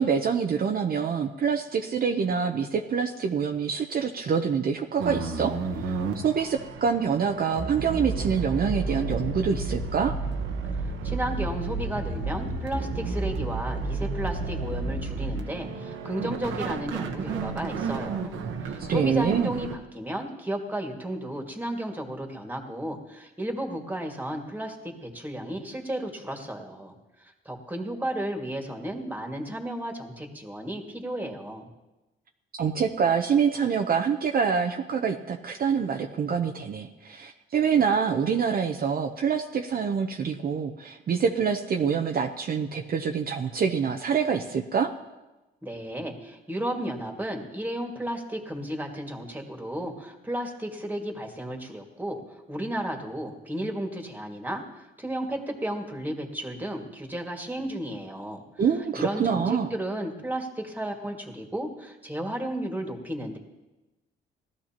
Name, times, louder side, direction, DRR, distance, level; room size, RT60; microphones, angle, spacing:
voice 1, 0.0-10.2 18.8-19.5 32.5-44.9 58.6-59.7, right 6 dB, 50° right, 4 dB, 0.8 m, -26 dB
sound 1, 5.0-19.8, right 3 dB, 85° right, 1.3 m, -31 dB
voice 2, 10.7-26.9 27.2-31.7 45.6-52.2 52.5-58.4 58.9-63.4, right 1 dB, 10° right, 1 dB, 2.1 m, -33 dB
18.5 x 13.0 x 3.0 m, 1.1 s
cardioid pair, 90°, 20 cm